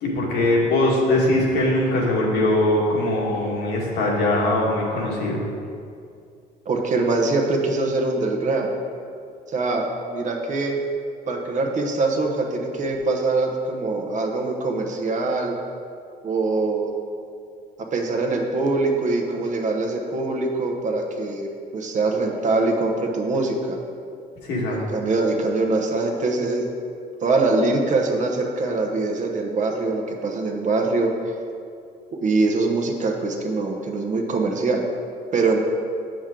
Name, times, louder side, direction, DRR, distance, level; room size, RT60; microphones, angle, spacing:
voice 1, 0.0-5.4 24.4-24.8, left 1 dB, 80° left, -3 dB, 1.7 m, -21 dB
voice 2, 6.7-8.7 9.5-10.8 11.3-15.5 16.2-16.9 17.9-23.8 24.9-26.7 27.2-31.1 32.2-34.9 35.3-35.6, right 3 dB, 45° right, 2 dB, 1.0 m, -23 dB
7.3 x 6.2 x 3.8 m, 2.4 s
cardioid pair, 110°, 17 cm